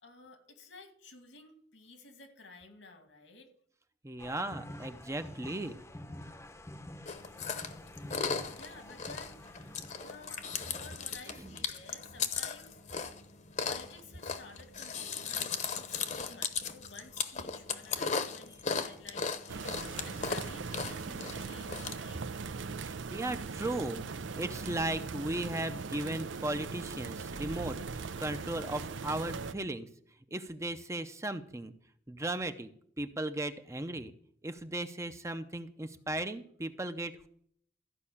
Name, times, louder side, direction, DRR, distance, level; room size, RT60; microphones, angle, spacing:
voice 1, 0.0-3.5 8.5-12.8 13.6-19.3 20.0-22.3, left 3 dB, 85° left, 6 dB, 2.4 m, -53 dB
voice 2, 4.0-5.8 22.9-24.1 24.4-27.8 28.2-29.9 30.3-31.7 32.1-32.7 33.0-34.1 34.4-37.3, right 1 dB, 15° right, 9 dB, 0.6 m, -36 dB
sound 1, 4.2-10.9, left 1 dB, 15° left, 0.8 m, -48 dB
Chewing mastication, 7.1-21.9, left 5 dB, 40° left, 1.0 m, -37 dB
sound 2, 19.5-29.5, right 4 dB, 85° right, 0.6 m, -40 dB
14.0 x 5.5 x 8.5 m, 0.64 s
head